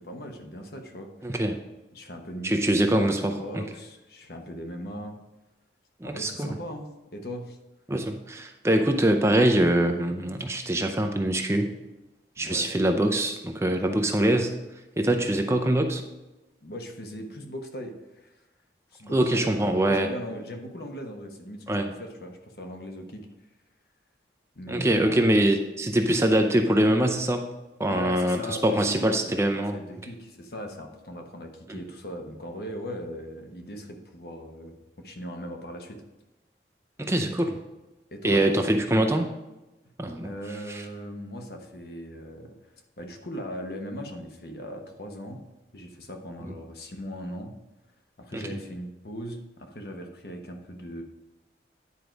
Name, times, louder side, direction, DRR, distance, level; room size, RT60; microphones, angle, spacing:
voice 1, 0.0-1.4 1.9-5.2 6.0-7.6 12.4-12.7 16.6-18.3 18.9-23.3 24.6-25.3 27.8-36.0 38.1-38.5 40.2-42.5 43.0-45.4 45.7-47.5 48.2-51.0, equal, 60° left, 4 dB, 1.0 m, -39 dB
voice 2, 1.2-1.6 2.4-3.6 6.0-6.6 7.9-11.7 12.4-14.6 15.0-16.0 19.1-20.1 21.7-21.9 24.7-27.5 27.8-29.8 31.7-31.8 37.0-37.6 38.2-39.3 40.0-40.3 40.7-40.8 46.5-46.6 48.3-48.6, right 1 dB, 15° right, 5 dB, 0.5 m, -24 dB
9.7 x 4.6 x 5.1 m, 1.0 s
head